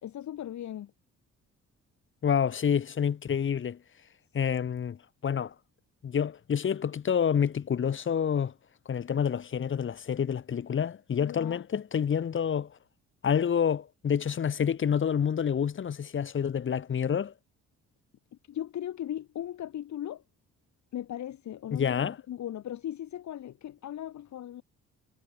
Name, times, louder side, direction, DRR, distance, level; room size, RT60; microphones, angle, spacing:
voice 1, 0.0-0.9 11.2-11.7 18.5-20.2 20.9-24.6, left 11 dB, 70° left, 3.0 m, -38 dB
voice 2, 2.2-3.8 4.3-5.5 6.0-8.5 8.9-12.7 13.2-17.3 21.7-22.2, left 8 dB, 40° left, 1.2 m, -28 dB
cardioid pair, 90°, 30 cm